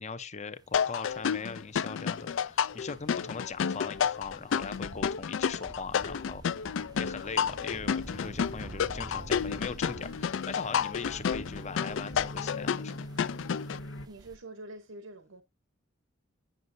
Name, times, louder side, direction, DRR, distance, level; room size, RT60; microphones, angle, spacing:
voice 1, 0.0-12.9, left 5 dB, 35° left, 0.7 m, -40 dB
sound 1, 0.7-13.8, left 7 dB, 65° left, 0.4 m, -31 dB
sound 2, 0.7-14.4, right 2 dB, 20° right, 0.5 m, -49 dB
sound 3, 6.3-14.1, left 1 dB, 85° left, 1.0 m, -46 dB
voice 2, 14.1-15.4, right 2 dB, 85° right, 1.0 m, -46 dB
9.3 x 6.4 x 2.6 m
head